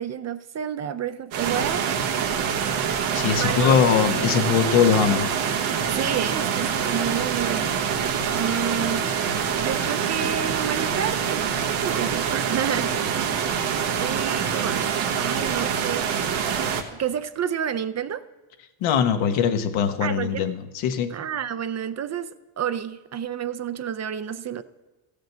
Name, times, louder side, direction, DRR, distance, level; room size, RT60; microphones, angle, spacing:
voice 1, 0.0-2.2 3.3-3.9 5.9-7.8 8.3-9.1 9.6-13.1 14.0-14.8 15.1-16.1 16.3-16.7 17.0-18.2 20.0-20.5 21.1-24.6, right 8 dB, 35° right, 13 dB, 0.5 m, -30 dB
sound 1, 1.3-16.8, right 7 dB, 85° right, 1.3 m, -25 dB
voice 2, 3.1-5.3 18.8-21.1, left 8 dB, 80° left, 7 dB, 1.1 m, -21 dB
14.0 x 5.1 x 7.9 m, 1.2 s
supercardioid pair, 90°, 47 cm